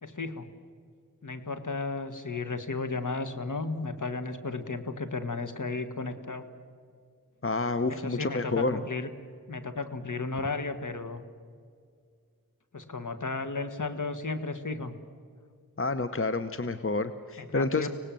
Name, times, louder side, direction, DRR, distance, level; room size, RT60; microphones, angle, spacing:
voice 1, 0.0-0.5 1.2-6.4 7.9-9.1 9.5-11.2 12.7-14.9 17.4-17.9, left 3 dB, 60° left, 9 dB, 1.7 m, -34 dB
voice 2, 7.4-8.8 15.8-17.9, left 3 dB, 40° left, 11 dB, 0.9 m, -29 dB
25.0 x 18.5 x 7.6 m, 2.2 s
wide cardioid pair, 40°, 35 cm